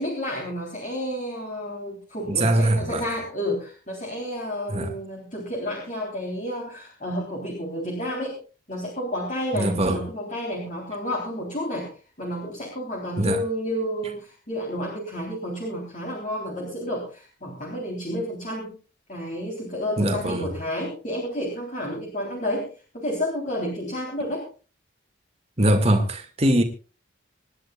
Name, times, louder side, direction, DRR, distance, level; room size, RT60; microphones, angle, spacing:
voice 1, 0.0-8.4 8.7-18.8 19.1-22.7 22.9-24.5, equal, 40° left, 3.6 m, -30 dB
voice 2, 2.3-3.0 4.7-4.9 9.5-10.0 13.2-13.4 20.0-20.5 25.6-26.6, right 1 dB, 30° right, 2.0 m, -22 dB
26.0 x 10.5 x 2.4 m
head